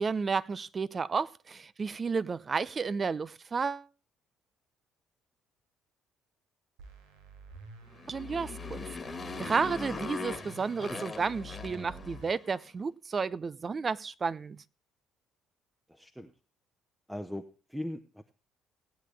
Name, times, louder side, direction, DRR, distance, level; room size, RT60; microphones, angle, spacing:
voice 1, 0.0-3.9 8.1-8.9 9.4-14.6, right 5 dB, 35° right, 0.6 m, -32 dB
sound 1, 6.8-12.4, equal, 80° right, 2.0 m, -48 dB
Motorcycle, 7.9-12.5, left 4 dB, 30° left, 1.7 m, -40 dB
voice 2, 15.9-16.3 17.1-18.3, left 1 dB, 5° right, 1.1 m, -40 dB
17.5 x 9.2 x 3.3 m
hypercardioid pair, 50°, 0 cm